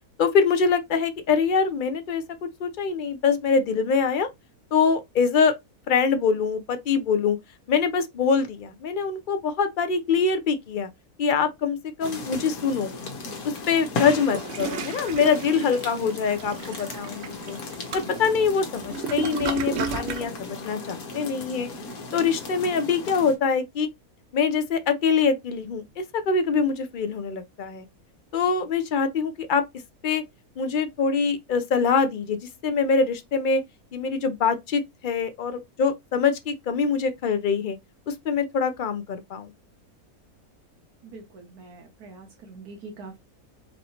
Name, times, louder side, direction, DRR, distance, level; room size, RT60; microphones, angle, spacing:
voice 1, 0.2-2.2 2.6-4.3 4.7-5.5 5.9-7.4 7.7-10.9 11.2-12.9 13.7-17.6 17.9-21.7 22.1-23.9 24.3-27.8 28.3-29.6 30.0-30.2 30.6-33.6 33.9-37.8 38.1-39.5, left 5 dB, 60° left, 0.5 m, -24 dB
icy snow in a forest, 12.0-23.4, left 3 dB, 75° left, 1.4 m, -36 dB
Toilet flush, 14.1-20.3, right 5 dB, 60° right, 0.7 m, -33 dB
voice 2, 41.0-43.2, right 3 dB, 85° right, 1.3 m, -43 dB
4.4 x 2.7 x 2.8 m
omnidirectional pair, 1.6 m